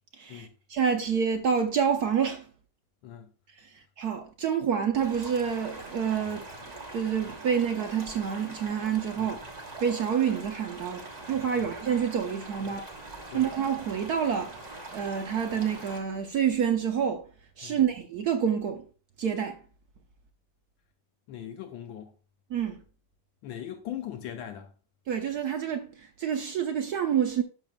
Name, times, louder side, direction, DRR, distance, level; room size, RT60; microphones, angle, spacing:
voice 1, 0.1-2.5 3.6-6.5 6.9-9.4 9.8-12.9 13.3-17.3 17.6-18.9 19.2-19.6 22.5-22.8 25.1-27.4, right 7 dB, 65° right, 1.0 m, -28 dB
sound 1, 5.0-16.0, right 2 dB, 25° right, 1.1 m, -43 dB
voice 2, 21.3-22.1 23.4-24.7, left 10 dB, 75° left, 1.4 m, -40 dB
12.0 x 6.4 x 2.2 m
omnidirectional pair, 2.2 m